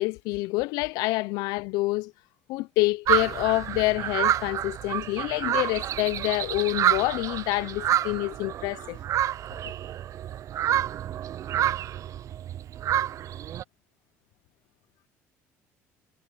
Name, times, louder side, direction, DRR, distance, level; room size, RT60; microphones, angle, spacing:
voice 1, 0.0-2.1 2.5-9.0, left 21 dB, 75° left, 0.6 m, -27 dB
sound 1, 3.1-13.6, right 11 dB, 55° right, 0.5 m, -28 dB
supercardioid pair, 75°, 7 cm